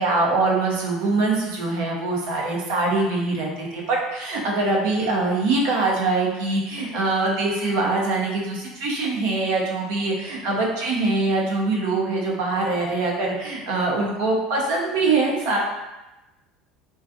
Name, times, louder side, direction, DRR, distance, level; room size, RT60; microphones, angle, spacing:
voice 1, 0.0-15.6, right 3 dB, 75° right, -2 dB, 0.6 m, -23 dB
2.4 x 2.3 x 2.6 m, 1.0 s
hypercardioid pair, 85°, 0 cm